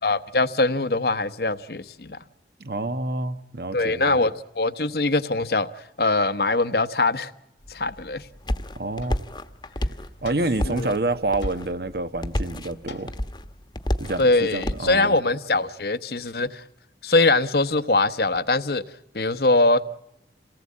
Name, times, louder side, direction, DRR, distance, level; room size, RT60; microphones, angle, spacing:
voice 1, 0.0-2.2 3.7-7.3 7.7-8.2 10.6-10.9 14.2-16.6 17.0-18.8 19.1-19.8, left 2 dB, 60° left, 1.0 m, -22 dB
voice 2, 2.6-4.2 8.8-9.2 10.2-13.1 14.0-15.2, right 2 dB, 60° right, 1.2 m, -28 dB
sound 1, 7.6-14.9, left 1 dB, 25° left, 1.2 m, -31 dB
sound 2, 8.3-8.4 9.0-9.4 10.2-10.8 11.4-11.9 12.9-13.4 14.0-14.5 14.8-15.7, left 4 dB, 85° left, 2.0 m, -47 dB
27.5 x 18.5 x 8.6 m
head